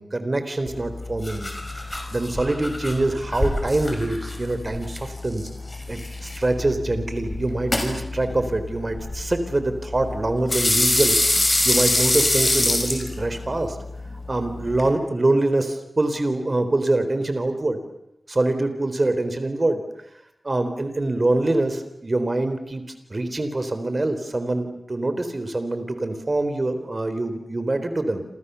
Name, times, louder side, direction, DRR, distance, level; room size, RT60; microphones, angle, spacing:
voice 1, 0.0-1.5 2.1-5.5 5.9-11.2 11.6-13.8 14.3-17.8 18.3-19.8 20.4-22.8 23.1-28.2, right 2 dB, 35° right, 9 dB, 3.9 m, -24 dB
sound 1, 0.7-14.9, left 1 dB, 25° left, 5.9 m, -26 dB
29.5 x 27.0 x 7.0 m, 0.81 s
wide cardioid pair, 100°, 0 cm